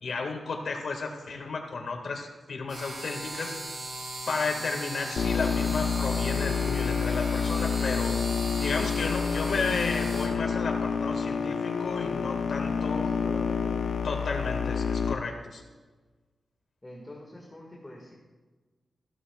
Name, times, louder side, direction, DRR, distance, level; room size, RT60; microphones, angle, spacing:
voice 1, 0.0-3.6 4.3-8.2 8.6-13.1 14.0-15.6, left 4 dB, 70° left, 2 dB, 1.9 m, -33 dB
sound 1, 2.7-10.3, right 1 dB, 40° right, 3.1 m, -38 dB
sound 2, 5.2-15.1, left 6 dB, 85° left, 0.6 m, -28 dB
voice 2, 12.6-13.8 16.8-18.1, left 1 dB, 15° left, -3 dB, 1.9 m, -44 dB
15.5 x 12.5 x 2.4 m, 1.3 s
wide cardioid pair, 100°, 0 cm